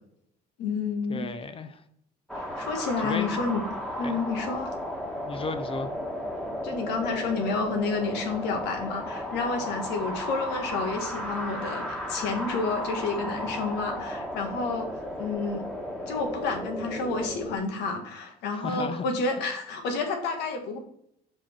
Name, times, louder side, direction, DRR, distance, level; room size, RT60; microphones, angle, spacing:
voice 1, 0.6-1.3 2.3-3.6 4.0-4.7 6.6-14.9 15.2-15.6 16.1-20.8, left 4 dB, 85° left, 1.5 m, -30 dB
voice 2, 1.1-1.8 3.0-3.4 4.0-4.2 5.3-5.9 18.5-19.1 19.4-19.5, left 4 dB, 35° left, 0.7 m, -34 dB
sound 1, 2.3-17.6, equal, 5° left, 1.4 m, -34 dB
6.0 x 4.8 x 4.4 m
cardioid pair, 110°, 17 cm